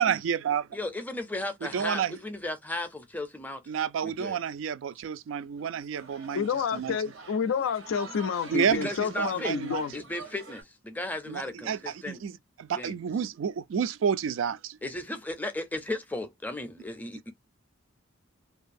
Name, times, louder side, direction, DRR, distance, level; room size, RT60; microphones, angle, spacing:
voice 1, 0.0-0.6 1.6-2.2 3.7-6.5 6.7-7.0 8.5-8.9 9.2-9.8 11.3-14.8, right 7 dB, 75° right, 0.3 m, -30 dB
voice 2, 0.7-3.6 4.0-4.4 8.8-9.5 9.9-12.2 12.8-12.9 14.8-17.3, left 2 dB, 10° left, 0.4 m, -35 dB
sound 1, 5.4-10.6, right 4 dB, 90° right, 0.9 m, -47 dB
voice 3, 6.3-9.9, left 6 dB, 80° left, 0.3 m, -29 dB
2.6 x 2.3 x 2.5 m
head